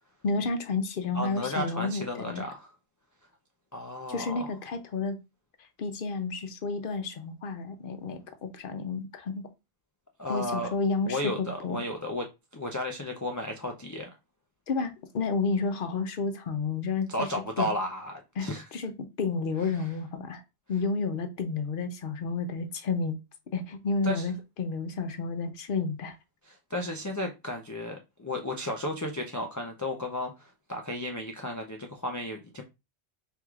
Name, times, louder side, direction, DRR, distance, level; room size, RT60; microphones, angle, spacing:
voice 1, 0.2-2.4 4.1-5.2 5.8-9.5 10.3-11.8 14.7-17.3 17.6-17.7 18.4-18.5 18.7-18.9 19.2-20.4 20.7-23.2 23.5-24.3 24.6-26.2, left 4 dB, 60° left, 0.8 m, -31 dB
voice 2, 1.1-2.7 3.7-4.5 10.2-10.7 11.1-14.1 17.1-18.6 19.7-19.9 24.0-24.3 26.4-32.6, left 1 dB, 30° left, 0.3 m, -34 dB
4.6 x 3.4 x 2.4 m
omnidirectional pair, 1.1 m